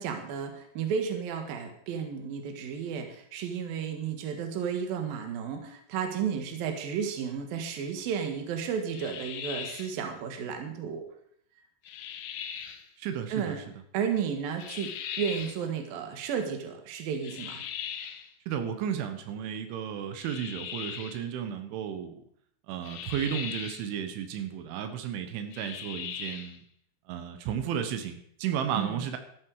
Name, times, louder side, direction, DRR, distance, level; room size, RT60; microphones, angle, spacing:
voice 1, 0.0-11.1 13.3-13.6 13.9-14.9 15.2-17.6 28.7-29.0, right 7 dB, 60° right, 5 dB, 3.1 m, -33 dB
sound 1, 8.9-10.0 11.8-12.8 14.6-15.6 17.2-18.3 20.2-21.2 22.8-23.9 25.5-26.6, left 9 dB, 85° left, 3.5 m, -39 dB
voice 2, 13.0-13.7 18.5-22.2 22.7-26.6 27.1-29.2, right 8 dB, 85° right, 7 dB, 3.6 m, -33 dB
13.5 x 12.0 x 4.9 m, 0.67 s
omnidirectional pair, 5.3 m